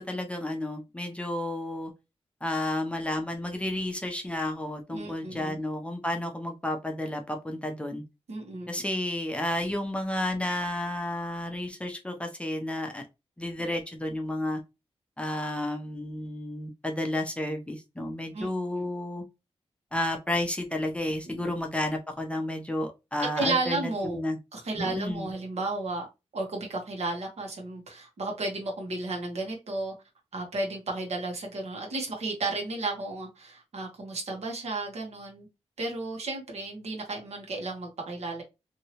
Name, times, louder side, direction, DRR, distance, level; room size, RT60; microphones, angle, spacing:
voice 1, 0.0-1.9 2.4-8.0 8.7-13.0 13.4-14.6 15.2-19.2 19.9-24.4 24.8-25.3, left 1 dB, 10° left, 3 dB, 0.5 m, -31 dB
voice 2, 4.9-5.6 8.3-8.7 18.3-18.5 18.8-18.9 21.3-21.5 23.4-24.2 24.5-26.1 26.3-29.9 30.3-35.5 35.8-38.4, right 2 dB, 80° right, 0 dB, 1.2 m, -33 dB
2.9 x 2.7 x 2.9 m, 0.25 s
wide cardioid pair, 145°, 11 cm